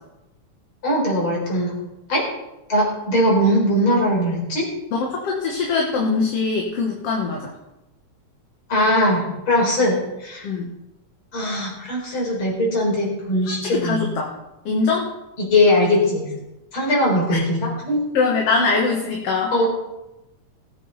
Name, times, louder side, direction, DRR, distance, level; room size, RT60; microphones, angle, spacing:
voice 1, 0.8-1.7 2.1-2.2 2.7-4.7 8.7-10.4 11.3-14.0 15.4-16.2 16.7-18.0 19.5-19.7, left 1 dB, 45° left, -3 dB, 4.9 m, -20 dB
voice 2, 4.9-7.5 10.4-10.7 13.6-14.3 14.7-15.1 17.3-17.4 18.1-19.5, left 4 dB, 60° left, 0 dB, 2.3 m, -22 dB
19.0 x 8.3 x 4.0 m, 0.96 s
omnidirectional pair, 3.3 m